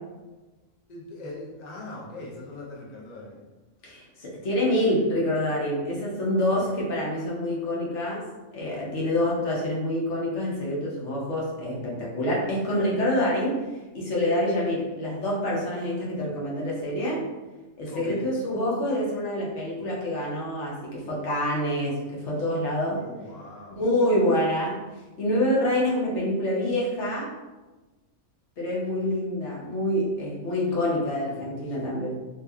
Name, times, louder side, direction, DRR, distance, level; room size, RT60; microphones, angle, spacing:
voice 1, 0.9-3.4 6.5-6.8 17.9-18.3 22.9-24.2, left 2 dB, 50° left, -4 dB, 0.5 m, -41 dB
voice 2, 3.8-8.2 8.5-17.3 17.8-23.0 23.7-24.8 25.2-27.3 28.6-32.2, left 1 dB, 65° left, -4 dB, 1.0 m, -26 dB
2.6 x 2.4 x 2.3 m, 1.2 s
omnidirectional pair, 1.3 m